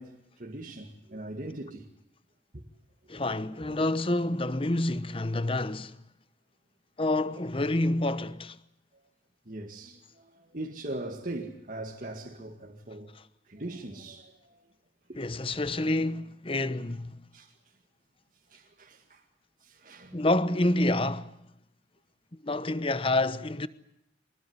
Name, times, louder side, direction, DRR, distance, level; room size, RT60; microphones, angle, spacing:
voice 1, 0.0-1.9 2.5-2.6 9.5-13.1 13.4-14.6 15.1-15.2 17.3-17.5 18.5-19.2 19.6-20.2, right 1 dB, 45° right, 2.2 m, -41 dB
voice 2, 3.1-6.0 7.0-8.6 13.1-13.2 15.2-17.2 20.1-21.5 22.3-23.7, left 2 dB, 30° left, 1.0 m, -28 dB
24.0 x 21.0 x 9.8 m
head